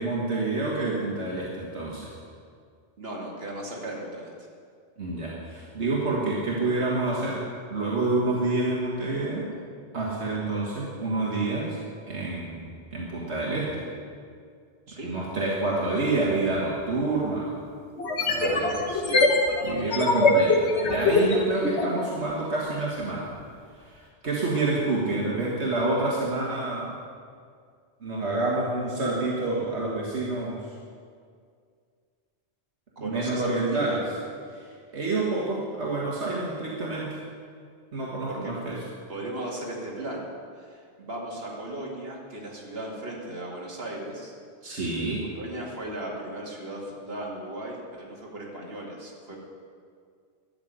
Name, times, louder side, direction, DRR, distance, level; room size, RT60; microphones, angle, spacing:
voice 1, 0.0-2.1 5.0-9.5 9.9-11.8 12.1-13.9 15.0-17.5 18.3-18.7 19.6-23.3 23.8-27.0 28.0-30.6 33.0-34.0 34.5-34.6 34.9-37.1 37.9-38.8 44.6-45.2, right 2 dB, 75° right, -5 dB, 2.1 m, -28 dB
voice 2, 3.0-4.3 14.9-15.1 18.3-19.3 33.0-34.0 38.3-38.5 39.1-40.3 40.6-44.3 45.2-49.4, right 1 dB, 60° right, -3 dB, 2.5 m, -36 dB
sound 1, 16.6-16.7 18.0-22.0, left 3 dB, 75° left, 1.7 m, -23 dB
12.0 x 7.1 x 9.4 m, 2.2 s
omnidirectional pair, 1.1 m